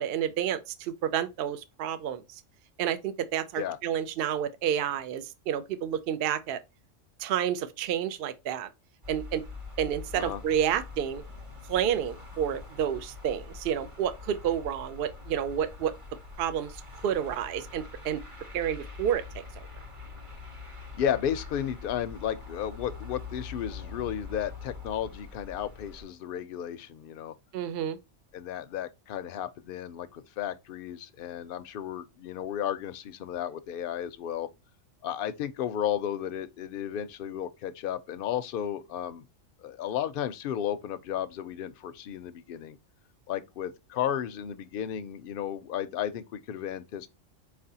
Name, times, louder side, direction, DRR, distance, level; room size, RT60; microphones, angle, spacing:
voice 1, 0.0-2.2 2.8-6.6 7.2-8.7 9.1-9.4 9.8-11.2 11.7-15.9 16.4-16.7 17.0-18.2 18.5-19.4 27.5-28.0, right 9 dB, 60° right, 0.7 m, -30 dB
sound 1, 9.0-26.0, left 4 dB, 30° right, 1.0 m, -44 dB
voice 2, 20.9-27.3 28.3-34.5 35.0-39.3 39.6-42.8 43.3-47.1, left 10 dB, 60° left, 0.6 m, -33 dB
4.5 x 3.3 x 2.7 m
omnidirectional pair, 1.3 m